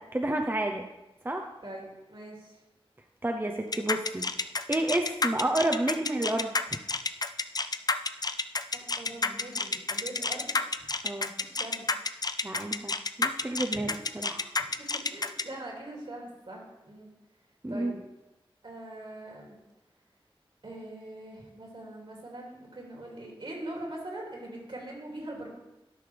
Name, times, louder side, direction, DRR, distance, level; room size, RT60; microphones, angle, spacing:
voice 1, 0.1-0.8 1.2-1.4 3.2-4.2 4.7-6.8 11.0-11.3 12.4-12.9 13.2-14.4 17.6-17.9, right 1 dB, 20° right, 3 dB, 0.6 m, -30 dB
voice 2, 1.6-2.6 8.7-10.6 11.4-11.9 13.7-13.9 14.2-17.1 17.7-18.0 18.6-19.6 20.6-25.5, right 1 dB, 60° right, -2 dB, 2.6 m, -42 dB
sound 1, 3.7-15.4, left 3 dB, 40° left, 0.4 m, -29 dB
12.5 x 5.5 x 3.4 m, 0.97 s
wide cardioid pair, 55°, 10 cm